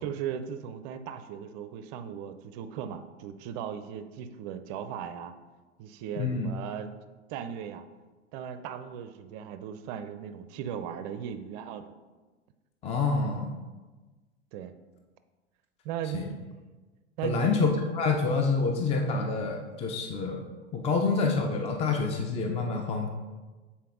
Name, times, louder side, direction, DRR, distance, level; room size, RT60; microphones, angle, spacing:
voice 1, 0.0-5.3 5.8-6.9 7.3-7.8 8.3-11.9 14.5-14.7 15.8-16.4 17.2-17.6, right 9 dB, 40° right, 11 dB, 0.5 m, -37 dB
voice 2, 6.2-6.5 12.8-13.5 16.1-16.2 17.2-20.4 20.7-23.1, left 4 dB, 20° left, 3 dB, 0.5 m, -27 dB
7.5 x 4.2 x 3.6 m, 1.3 s
hypercardioid pair, 95°, 35 cm